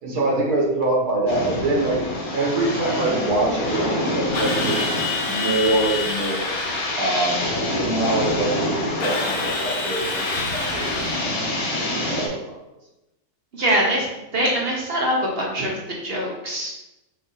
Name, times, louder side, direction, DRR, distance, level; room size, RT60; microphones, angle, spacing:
voice 1, 0.0-2.0 2.3-4.8 5.2-6.6 6.9-12.5, right 2 dB, 85° right, -2 dB, 1.6 m, -25 dB
sound 1, 1.3-12.3, left 1 dB, 75° left, 1.5 m, -27 dB
Drill, 4.3-7.0 9.0-11.5, left 4 dB, 60° left, 1.0 m, -28 dB
voice 2, 13.5-14.1 14.3-15.7 16.0-16.7, equal, 50° right, -2 dB, 0.8 m, -23 dB
5.3 x 2.5 x 3.9 m, 0.95 s
omnidirectional pair, 1.6 m